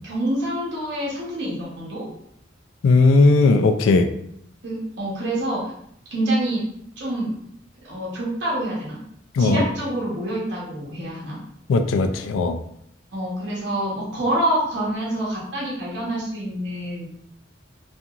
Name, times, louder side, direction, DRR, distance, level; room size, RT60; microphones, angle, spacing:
voice 1, 0.0-2.1 4.6-5.7 6.1-6.6 7.0-7.3 7.8-9.0 9.4-11.4 13.1-17.1, right 1 dB, 65° right, -6 dB, 0.9 m, -26 dB
voice 2, 2.8-4.1 9.3-9.6 11.7-12.6, left 3 dB, 90° left, 8 dB, 0.3 m, -17 dB
2.8 x 2.4 x 2.3 m, 0.71 s
head